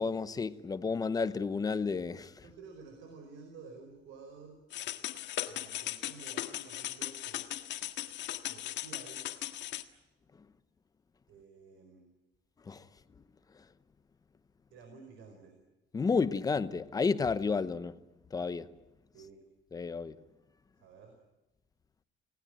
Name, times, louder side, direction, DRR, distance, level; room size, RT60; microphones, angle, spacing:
voice 1, 0.0-2.3 12.7-12.8 15.9-18.0 18.3-18.7 19.7-20.1, left 4 dB, 20° left, 0.8 m, -31 dB
voice 2, 2.4-4.6 5.5-7.5 8.5-9.3 11.3-12.1 14.7-15.6 19.1-19.5 20.7-21.2, right 4 dB, 85° right, 4.8 m, -52 dB
sound 1, 4.7-9.8, left 13 dB, 70° left, 1.7 m, -38 dB
29.5 x 19.0 x 9.0 m
cardioid pair, 175°, 19 cm